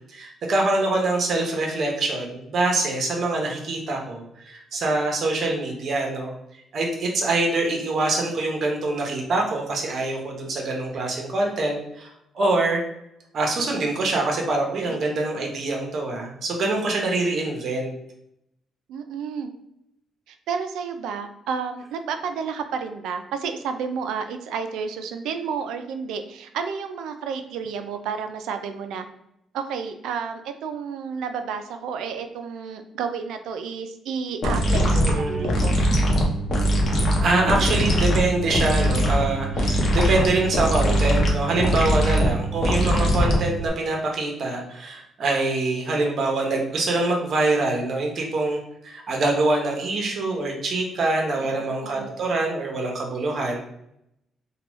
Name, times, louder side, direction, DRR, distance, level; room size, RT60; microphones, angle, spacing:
voice 1, 0.1-6.3 6.7-12.1 12.3-12.8 13.3-17.9 34.9-35.5 37.2-53.6, right 2 dB, 60° right, 1 dB, 0.8 m, -24 dB
voice 2, 18.9-19.5 20.3-29.1 29.5-35.7 51.4-52.1, right 6 dB, 85° right, 7 dB, 0.3 m, -31 dB
sound 1, 34.4-43.7, equal, 55° left, 0.7 m, -21 dB
2.9 x 2.2 x 3.0 m, 0.78 s
cardioid pair, 90°, 0 cm